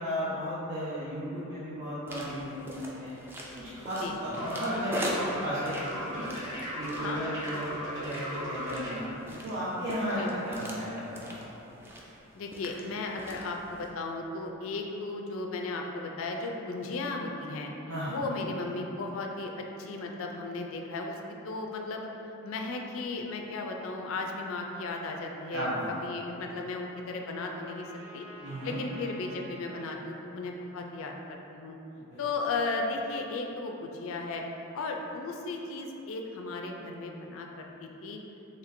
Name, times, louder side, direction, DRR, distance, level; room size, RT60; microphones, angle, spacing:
voice 1, 0.0-3.2 3.5-6.3 6.8-11.4 17.9-18.2 25.5-25.9 28.4-28.8 32.0-32.2, equal, 80° right, -11 dB, 0.8 m, -34 dB
sound 1, 2.1-13.9, equal, 10° right, 0.3 m, -42 dB
sound 2, 4.4-9.0, equal, 60° right, 1.2 m, -37 dB
voice 2, 7.0-7.4 10.2-10.3 12.3-17.7 18.1-19.5 19.8-21.2 21.4-22.1 22.4-27.9 28.1-28.2 28.6-31.8 32.2-34.4 34.7-38.2, left 3 dB, 70° left, 2 dB, 0.4 m, -35 dB
Trumpet, 25.6-29.9, right 1 dB, 25° right, 1.3 m, -51 dB
4.2 x 3.2 x 2.5 m, 3.0 s
head